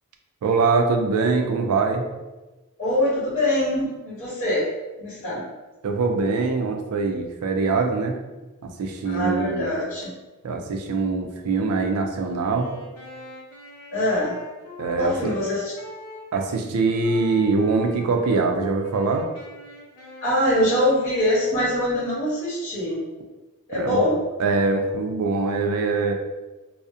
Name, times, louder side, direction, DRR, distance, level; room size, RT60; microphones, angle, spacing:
voice 1, 0.4-2.1 5.8-8.2 8.6-9.7 10.4-12.7 14.8-15.3 16.3-19.2 23.7-24.0 24.4-26.1, right 4 dB, 70° right, 4 dB, 0.4 m, -23 dB
voice 2, 2.8-4.6 5.0-5.4 9.0-10.1 13.9-14.3 14.9-15.7 20.2-23.0 23.7-24.2, left 1 dB, 35° left, -10 dB, 1.2 m, -23 dB
Wind instrument woodwind instrument, 12.3-16.5 17.0-18.4 18.8-22.0, left 1 dB, 90° left, 0.6 m, -43 dB
2.6 x 2.0 x 2.3 m, 1.1 s
head